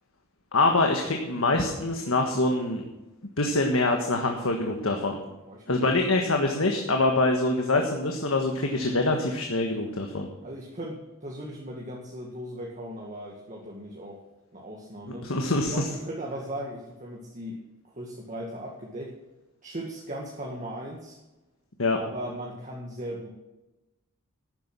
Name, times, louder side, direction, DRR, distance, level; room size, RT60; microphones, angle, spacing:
voice 1, 0.5-2.8 3.4-5.2 5.7-10.3 15.2-15.8 21.8-22.0, left 2 dB, 70° left, 3 dB, 1.5 m, -25 dB
voice 2, 5.5-5.9 10.4-14.2 14.5-15.3 15.7-17.6 17.9-19.1 19.6-21.2 22.0-23.3, right 1 dB, 35° right, -2 dB, 2.0 m, -38 dB
12.5 x 9.9 x 6.2 m, 1.0 s
head